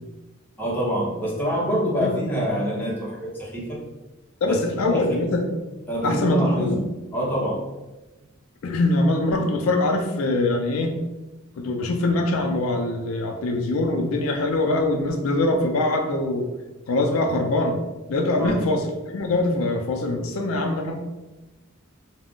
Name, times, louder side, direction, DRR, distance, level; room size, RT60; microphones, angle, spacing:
voice 1, 0.6-3.8 4.4-5.3 5.9-6.8 7.1-7.7 18.4-18.6, equal, 10° left, -5 dB, 0.7 m, -26 dB
voice 2, 4.4-5.5 6.0-6.8 8.6-10.9 11.6-16.5 16.9-17.8 18.1-21.0, left 2 dB, 85° left, 2 dB, 0.4 m, -23 dB
2.3 x 2.1 x 3.6 m, 1.1 s
head